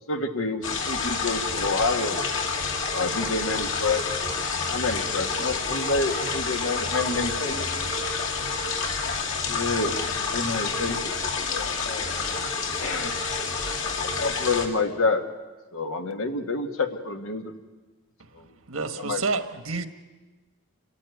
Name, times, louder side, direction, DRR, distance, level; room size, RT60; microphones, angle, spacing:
voice 1, 0.1-2.3 2.9-4.1 4.6-7.5 9.5-11.7 12.7-13.2 14.0-15.2 15.7-17.5 18.3-18.4 18.9-19.2, left 3 dB, 85° left, 1.9 m, -28 dB
sound 1, 0.6-14.7, left 4 dB, 65° left, 2.5 m, -28 dB
voice 2, 6.8-8.0 11.2-12.4 13.0-13.2, equal, 40° left, 1.9 m, -39 dB
voice 3, 18.4-19.9, right 4 dB, 80° right, 1.5 m, -30 dB
27.5 x 14.5 x 9.4 m
head